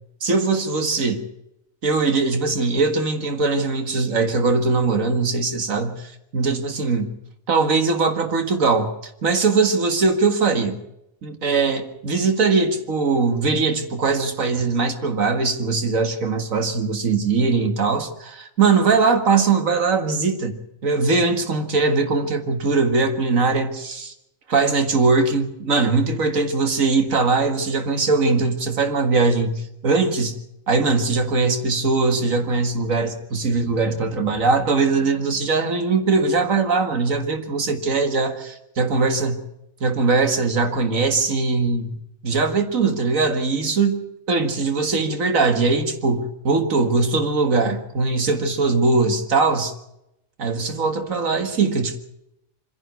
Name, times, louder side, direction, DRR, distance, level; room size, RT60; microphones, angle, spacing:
voice 1, 0.2-1.2 1.8-7.1 7.5-8.9 9.2-10.8 11.2-20.6 20.8-24.1 24.5-30.4 30.7-39.4 39.8-42.0 42.2-44.0 44.3-49.7 50.4-52.0, right 4 dB, 80° right, 7 dB, 2.2 m, -21 dB
25.0 x 11.0 x 9.5 m, 0.84 s
omnidirectional pair, 1.4 m